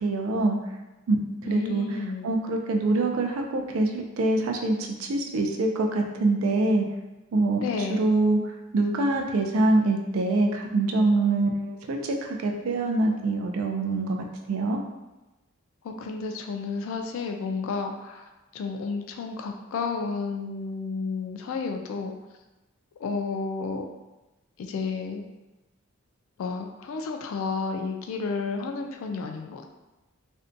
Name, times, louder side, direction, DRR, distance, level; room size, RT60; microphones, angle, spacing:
voice 1, 0.0-0.6 1.1-1.2 1.4-1.8 2.2-6.8 7.3-7.6 7.9-8.4 8.7-14.2 14.5-14.8, right 2 dB, 75° right, 3 dB, 0.4 m, -24 dB
voice 2, 1.4-2.4 7.6-8.0 15.8-18.3 18.5-22.1 23.0-23.9 24.6-25.3 26.4-29.7, left 4 dB, 70° left, 6 dB, 0.3 m, -31 dB
2.6 x 2.1 x 2.5 m, 1.0 s
head